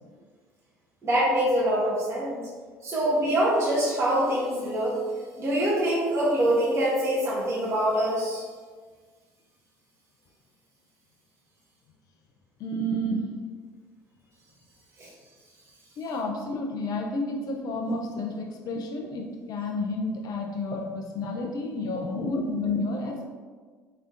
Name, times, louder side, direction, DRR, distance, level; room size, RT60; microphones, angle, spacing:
voice 1, 1.0-2.4 2.8-5.0 5.4-8.4 15.0-15.1, right 1 dB, 35° right, -7 dB, 1.0 m, -24 dB
voice 2, 12.6-13.3 16.0-23.3, left 1 dB, 55° left, 2 dB, 0.6 m, -30 dB
3.4 x 3.3 x 2.6 m, 1.5 s
hypercardioid pair, 65°, 8 cm